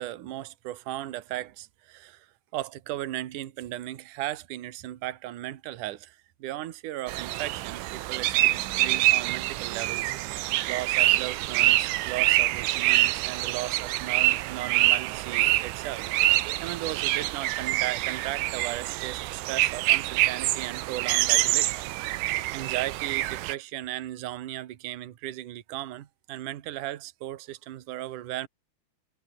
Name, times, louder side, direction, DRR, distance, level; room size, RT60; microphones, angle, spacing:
voice 1, 0.0-2.3 2.5-21.8 22.2-28.5, right 14 dB, 65° right, 2.2 m, -36 dB
sound 1, 7.1-23.5, right 17 dB, 80° right, 3.4 m, -26 dB
omnidirectional pair, 5.5 m